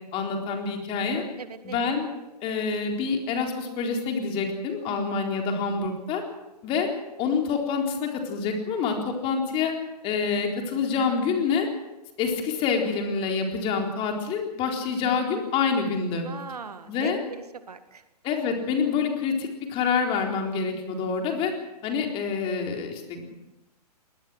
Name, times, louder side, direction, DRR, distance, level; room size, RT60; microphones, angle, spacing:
voice 1, 0.1-1.2 1.6-2.1 2.4-6.2 6.6-6.9 7.2-9.7 10.0-11.7 12.2-16.3 16.9-17.2 18.2-21.5 21.8-23.3, left 5 dB, 25° left, 2 dB, 4.0 m, -27 dB
voice 2, 1.4-2.0 4.9-5.2 16.2-18.0 20.7-21.1, right 5 dB, 70° right, 11 dB, 1.8 m, -40 dB
21.5 x 19.5 x 6.4 m, 1.0 s
figure-of-eight pair, 120°, 21 cm